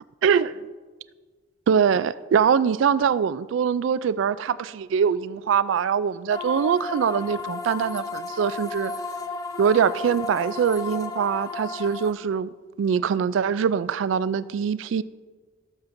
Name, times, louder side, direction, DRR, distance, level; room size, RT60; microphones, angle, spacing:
voice 1, 0.2-0.6 1.7-8.9 9.6-12.5 12.8-15.0, right 7 dB, 65° right, 0.3 m, -23 dB
sound 1, 6.3-12.1, left 3 dB, 20° left, 0.4 m, -33 dB
18.0 x 7.3 x 2.6 m
head